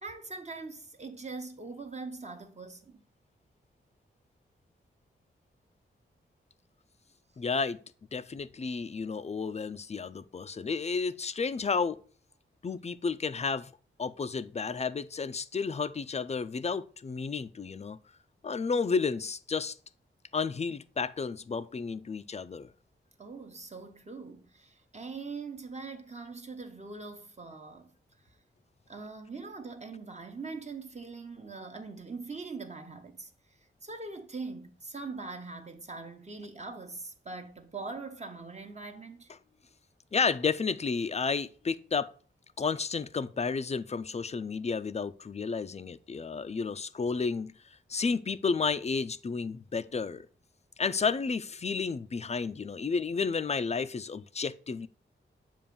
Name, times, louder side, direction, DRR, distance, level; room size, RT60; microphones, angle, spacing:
voice 1, 0.0-3.0 23.2-27.9 28.2-28.3 28.9-33.3 33.8-39.3, right 4 dB, 35° right, 0.9 m, -42 dB
voice 2, 7.4-7.8 8.1-12.0 12.6-13.7 14.0-18.0 18.4-19.8 20.3-22.7 40.1-42.1 42.6-47.5 47.9-50.3 50.8-54.9, left 5 dB, 30° left, 0.4 m, -32 dB
7.1 x 2.5 x 5.3 m
cardioid pair, 55°, 21 cm